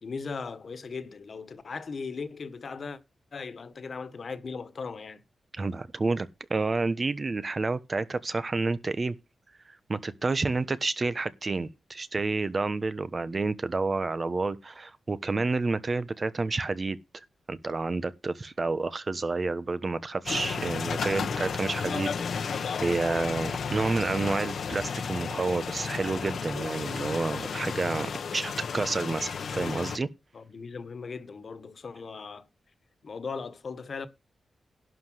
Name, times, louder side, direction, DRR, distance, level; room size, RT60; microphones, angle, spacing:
voice 1, 0.0-3.0 3.3-5.2 30.3-32.4 33.0-34.1, left 5 dB, 55° left, 1.7 m, -38 dB
voice 2, 5.5-9.1 9.7-30.1, right 3 dB, 35° right, 1.1 m, -30 dB
sound 1, 20.3-30.0, left 6 dB, 75° left, 1.2 m, -33 dB
11.5 x 5.0 x 7.9 m
wide cardioid pair, 95°, 0 cm